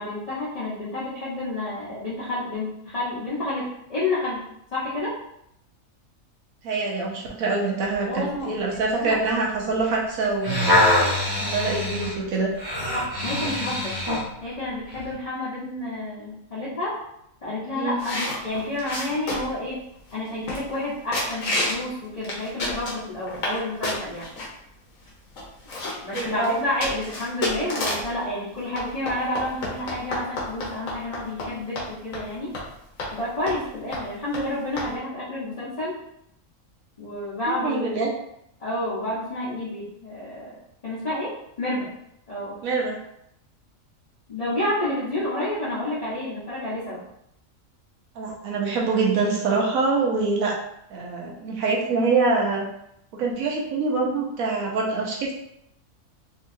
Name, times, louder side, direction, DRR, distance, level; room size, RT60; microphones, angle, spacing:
voice 1, 0.0-4.4 4.7-5.1 8.0-8.5 8.9-9.4 12.9-14.0 14.4-16.9 17.4-19.8 20.1-24.3 26.0-32.5 33.1-36.0 37.0-38.0 38.6-40.5 40.8-41.9 42.3-42.6 44.3-47.0, left 1 dB, 30° left, -10 dB, 0.9 m, -30 dB
voice 2, 6.6-10.8 11.4-12.5 17.7-18.0 26.1-26.6 37.5-38.1 42.6-43.0 48.2-50.6 50.9-52.7 53.1-55.3, right 3 dB, 80° right, -1 dB, 1.2 m, -25 dB
sound 1, 10.4-14.3 14.9-15.1, left 1 dB, 25° right, 0.5 m, -23 dB
sound 2, 18.0-19.6 20.1-20.2 20.5-20.8 21.1-21.8 22.2-23.6 23.8-24.5 25.1-25.2 25.4-28.1 28.8-31.5 31.8-31.9 32.1-32.3 32.5-32.7 33.0-33.1 33.5-33.7 33.9-34.0 34.3-34.4 34.8-34.9, left 2 dB, 75° left, 1.4 m, -29 dB
3.8 x 2.8 x 2.6 m, 0.77 s
omnidirectional pair, 1.4 m